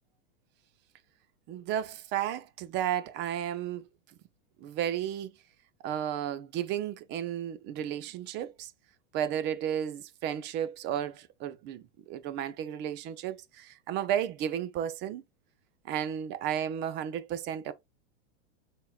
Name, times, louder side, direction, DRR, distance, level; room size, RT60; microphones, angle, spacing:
voice 1, 1.5-3.8 4.6-5.3 5.8-8.7 9.1-15.2 15.8-17.7, right 10 dB, 30° right, 0.6 m, -33 dB
5.7 x 3.7 x 2.4 m
supercardioid pair, 135°, 35 cm